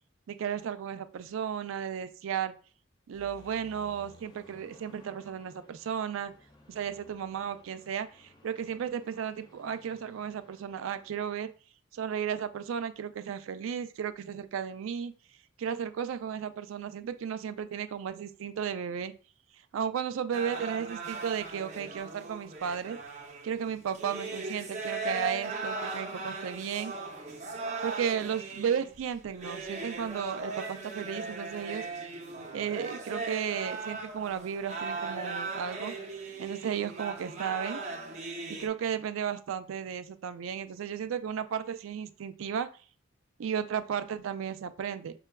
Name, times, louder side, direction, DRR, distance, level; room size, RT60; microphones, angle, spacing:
voice 1, 0.3-2.5 3.1-6.3 6.7-11.5 11.9-15.1 15.6-19.1 19.7-23.0 23.4-26.9 27.8-31.8 32.5-35.9 36.4-37.8 38.5-42.7 43.4-45.1, right 8 dB, 85° right, 11 dB, 0.3 m, -34 dB
sound 1, 3.1-11.2, left 1 dB, 20° left, 0.5 m, -58 dB
sound 2, 20.3-38.7, right 3 dB, 35° right, 0.6 m, -38 dB
5.5 x 2.2 x 2.2 m, 0.37 s
head